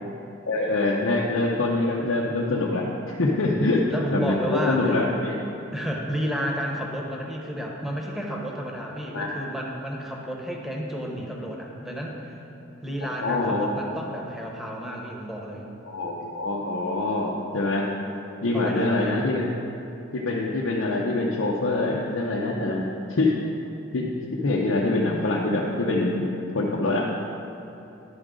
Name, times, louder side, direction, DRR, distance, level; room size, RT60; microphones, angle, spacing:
voice 1, 0.5-5.3 9.1-9.3 13.0-13.8 15.8-17.9 18.4-19.5 20.1-22.8 23.1-23.4 23.9-26.3 26.5-27.1, left 2 dB, 90° left, -4 dB, 0.7 m, -25 dB
voice 2, 3.9-5.0 5.7-12.4 12.8-15.7 18.5-19.3, equal, ahead, -2 dB, 0.9 m, -31 dB
10.5 x 6.3 x 3.7 m, 2.9 s
head